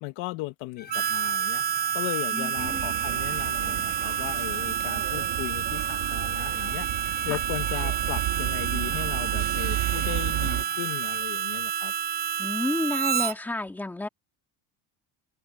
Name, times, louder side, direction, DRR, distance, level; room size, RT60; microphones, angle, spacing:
voice 1, 0.0-1.6 1.9-11.9, left 20 dB, 85° left, 1.6 m, -37 dB
sound 1, 0.8-11.2, left 7 dB, 25° left, 5.6 m, -48 dB
Harmonica, 0.9-13.3, right 9 dB, 25° right, 0.4 m, -29 dB
voice 2, 2.3-2.9 7.3-7.4 12.4-14.1, left 2 dB, 5° left, 1.9 m, -31 dB
sound 2, 2.6-10.6, right 16 dB, 60° right, 2.8 m, -33 dB
open air
cardioid pair, 180°, 39 cm